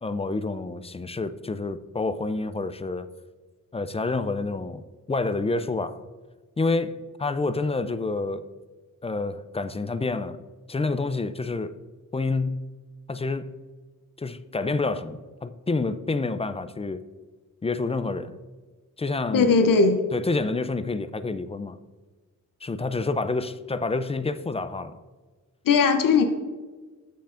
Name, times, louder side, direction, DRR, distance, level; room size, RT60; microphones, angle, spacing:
voice 1, 0.0-3.1 3.7-4.8 5.1-6.0 6.6-8.5 9.0-10.4 10.7-11.8 12.1-12.7 13.1-13.6 14.2-17.0 17.6-18.4 19.0-19.5 20.1-21.8 22.6-25.0, left 3 dB, 20° left, 0.4 m, -28 dB
voice 2, 19.3-20.0 25.6-26.2, left 4 dB, 90° left, 0.8 m, -18 dB
13.5 x 5.7 x 2.5 m
wide cardioid pair, 95°, 32 cm